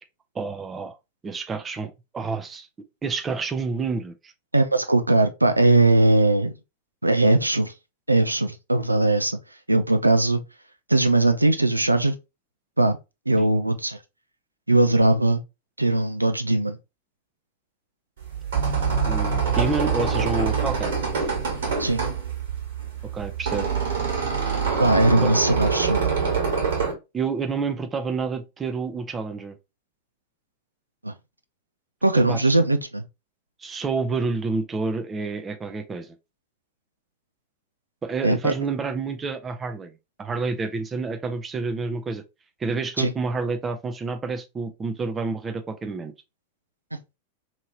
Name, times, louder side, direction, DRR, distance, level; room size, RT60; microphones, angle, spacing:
voice 1, 0.3-0.9 1.2-2.7 3.0-4.3 13.4-13.5 19.0-20.9 23.1-23.7 25.2-25.3 27.1-29.6 32.3-32.6 33.6-36.2 38.0-39.9 40.2-42.2 42.6-46.1, right 4 dB, 20° right, 0.5 m, -29 dB
voice 2, 4.5-6.5 7.0-7.7 8.1-9.4 9.7-10.4 10.9-12.1 12.8-13.0 13.3-14.0 14.7-15.4 15.8-16.8 21.8-22.0 24.8-26.2 31.0-31.1 32.0-33.0 38.2-38.5 43.0-43.1, right 2 dB, 85° right, 0.3 m, -20 dB
sound 1, 18.2-26.9, right 5 dB, 60° right, 1.5 m, -25 dB
2.8 x 2.8 x 2.7 m
figure-of-eight pair, 90°, 0 cm